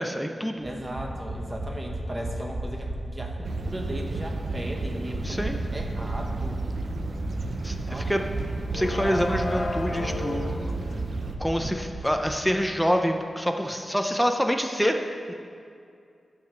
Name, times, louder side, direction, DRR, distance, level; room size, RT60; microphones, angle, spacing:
voice 1, 0.0-0.7 5.2-5.6 7.6-8.2 8.7-10.7 11.4-15.3, equal, ahead, 4 dB, 0.5 m, -26 dB
voice 2, 0.6-6.6 7.9-8.1, equal, 20° right, 1 dB, 1.0 m, -37 dB
sound 1, 0.6-12.4 12.6-12.7 12.9-13.0, right 2 dB, 70° right, 2.6 m, -35 dB
sound 2, 3.4-11.4, right 3 dB, 55° right, 0.5 m, -34 dB
sound 3, 7.5-7.7 8.0-12.7, left 2 dB, 55° left, 0.7 m, -35 dB
9.9 x 4.9 x 6.7 m, 2.3 s
wide cardioid pair, 145°, 0 cm